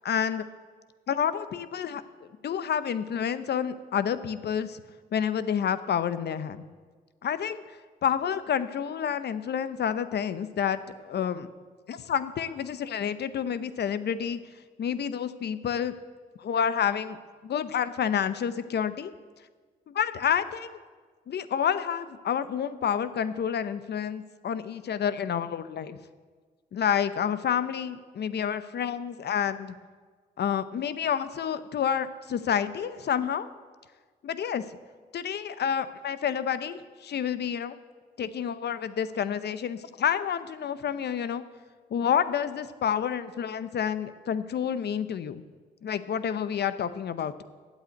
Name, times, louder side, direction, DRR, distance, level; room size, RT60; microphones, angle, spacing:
voice 1, 0.0-0.4 1.1-2.0 2.4-4.8 5.1-6.6 7.2-7.6 8.0-11.5 11.9-14.4 14.8-15.9 16.4-17.2 17.4-19.1 19.9-20.8 21.3-26.0 26.7-29.7 30.4-33.5 34.2-34.6 35.1-37.7 38.2-41.4 41.9-45.4 45.8-47.4, left 8 dB, 65° left, 13 dB, 0.8 m, -29 dB
9.3 x 8.2 x 9.1 m, 1.5 s
supercardioid pair, 50°, 18 cm